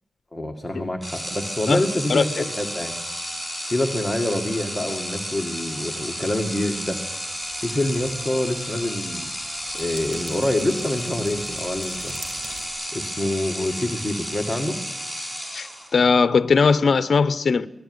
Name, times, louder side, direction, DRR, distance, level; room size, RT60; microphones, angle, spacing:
voice 1, 0.3-3.0 3.6-7.0 7.6-9.3 9.7-12.1 12.9-14.8, left 1 dB, 5° left, 2.1 m, -26 dB
sound 1, 1.0-16.1, equal, 10° right, 7.9 m, -32 dB
sound 2, 7.3-12.6, right 2 dB, 70° right, 7.4 m, -45 dB
voice 2, 15.5-17.7, left 5 dB, 50° left, 0.9 m, -19 dB
26.0 x 19.0 x 9.7 m
wide cardioid pair, 170°, 0 cm